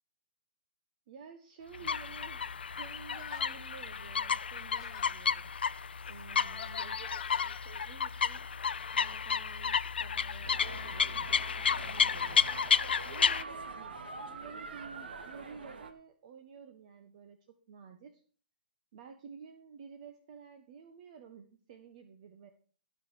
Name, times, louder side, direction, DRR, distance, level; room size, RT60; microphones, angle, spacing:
voice 1, 1.1-5.5 6.1-8.5 8.9-12.5 13.0-13.8 14.3-18.2 18.9-22.5, right 6 dB, 45° right, 7 dB, 1.4 m, -51 dB
sound 1, 1.7-13.4, left 6 dB, 75° left, 0.6 m, -32 dB
sound 2, 3.1-3.6 4.4-5.2 6.1-7.6, left 12 dB, 40° left, 0.9 m, -48 dB
sound 3, 10.4-15.9, right 4 dB, 70° right, 2.1 m, -45 dB
15.5 x 5.6 x 6.4 m, 0.42 s
hypercardioid pair, 135°, 5 cm